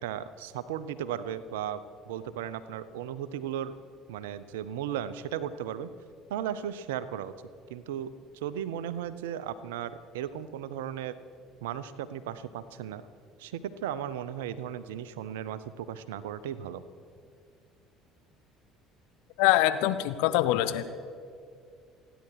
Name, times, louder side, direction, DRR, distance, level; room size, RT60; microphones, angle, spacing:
voice 1, 0.0-3.7 4.1-5.9 6.3-7.3 7.7-8.1 8.4-11.2 11.6-13.0 13.4-16.8, right 10 dB, 70° right, 15 dB, 0.7 m, -36 dB
voice 2, 19.4-20.8, left 14 dB, 65° left, 11 dB, 0.8 m, -24 dB
28.5 x 10.0 x 4.8 m, 2.3 s
figure-of-eight pair, 60°, 0 cm